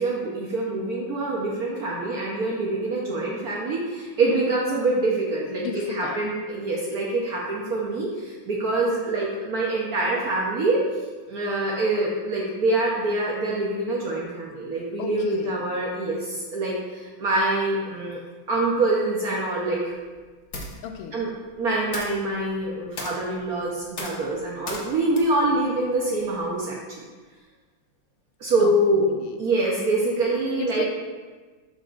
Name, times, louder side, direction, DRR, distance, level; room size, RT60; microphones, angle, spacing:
voice 1, 0.0-10.8 11.3-18.2 18.5-19.9 21.1-21.3 21.6-26.8 28.4-30.8, right 2 dB, 60° right, -4 dB, 1.0 m, -25 dB
voice 2, 5.5-6.3 15.0-15.6 20.8-21.2 28.6-29.4 30.6-30.8, left 7 dB, 85° left, 6 dB, 1.5 m, -35 dB
sound 1, 19.4-26.6, left 2 dB, 55° left, 0.8 m, -40 dB
6.8 x 6.3 x 2.5 m, 1.4 s
omnidirectional pair, 2.4 m